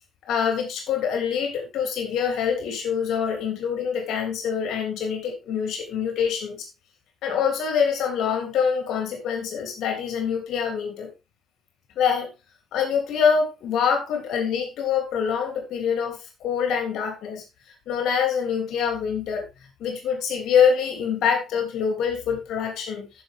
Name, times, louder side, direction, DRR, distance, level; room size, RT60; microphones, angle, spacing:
voice 1, 0.3-6.7 7.2-11.1 12.0-12.3 12.7-17.4 17.9-19.4 19.8-23.2, left 7 dB, 80° left, 3 dB, 3.1 m, -25 dB
13.5 x 5.9 x 3.6 m, 0.26 s
cardioid pair, 90°, 0 cm